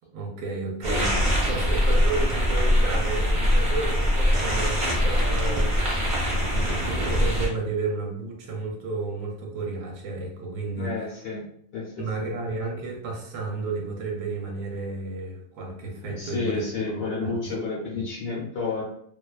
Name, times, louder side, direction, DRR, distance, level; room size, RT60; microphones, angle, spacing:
voice 1, 0.1-5.7 6.3-11.1 12.0-16.6 16.9-17.5 17.9-18.0, right 3 dB, 75° right, 1 dB, 0.9 m, -32 dB
sound 1, 0.8-7.5, equal, 45° right, 0.4 m, -23 dB
voice 2, 10.8-11.4 11.7-11.8 12.2-12.3 16.1-18.8, left 3 dB, 55° left, -5 dB, 0.7 m, -30 dB
2.5 x 2.2 x 2.3 m, 0.67 s
omnidirectional pair, 1.5 m